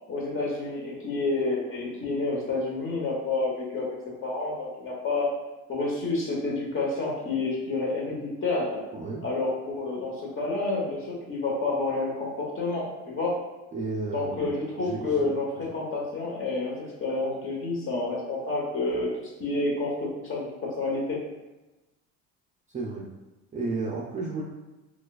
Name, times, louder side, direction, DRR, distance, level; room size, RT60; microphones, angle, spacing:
voice 1, 0.1-4.0 4.2-5.3 5.7-8.8 9.2-13.4 14.1-21.2, left 3 dB, 35° left, -3 dB, 1.1 m, -29 dB
voice 2, 8.9-9.2 13.7-14.5 14.8-15.3 22.7-23.1 23.5-24.4, right 3 dB, 20° right, -4 dB, 0.4 m, -32 dB
4.3 x 2.4 x 2.3 m, 1.1 s
cardioid pair, 110°, 35 cm